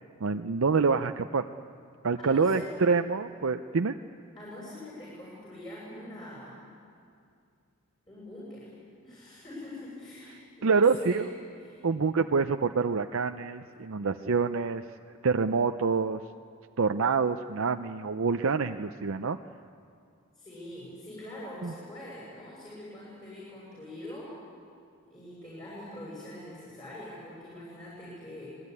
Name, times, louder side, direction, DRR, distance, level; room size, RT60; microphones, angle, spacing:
voice 1, 0.2-1.5 2.0-4.0 10.6-11.2 11.8-14.8 15.2-16.2 16.8-19.4 21.6-21.7, right 5 dB, 65° right, 7 dB, 0.6 m, -26 dB
voice 2, 2.2-2.7 4.3-6.5 8.1-8.7 9.0-11.2 11.6-11.8 20.4-24.3 25.1-28.6, left 1 dB, 20° left, -7 dB, 7.1 m, -43 dB
26.0 x 20.0 x 9.8 m, 2.4 s
head